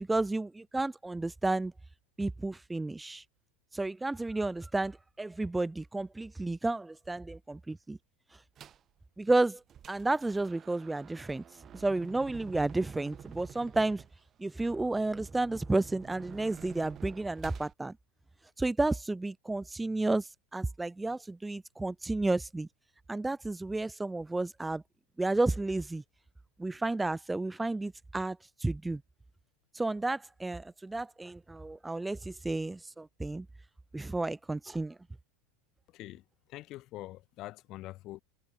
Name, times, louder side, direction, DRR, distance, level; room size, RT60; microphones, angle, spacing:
voice 1, 0.0-1.7 2.2-3.2 3.7-8.0 9.2-9.6 9.9-11.4 11.7-14.0 14.4-18.0 18.6-22.7 23.1-24.8 25.2-26.0 26.6-29.0 29.7-33.5 33.9-35.0, right 2 dB, 10° right, 0.3 m, -32 dB
sound 1, 8.6-8.9 9.4-17.7, right 9 dB, 35° right, 1.9 m, -50 dB
voice 2, 36.5-38.2, left 17 dB, 45° left, 1.7 m, -44 dB
hypercardioid pair, 90°, 0 cm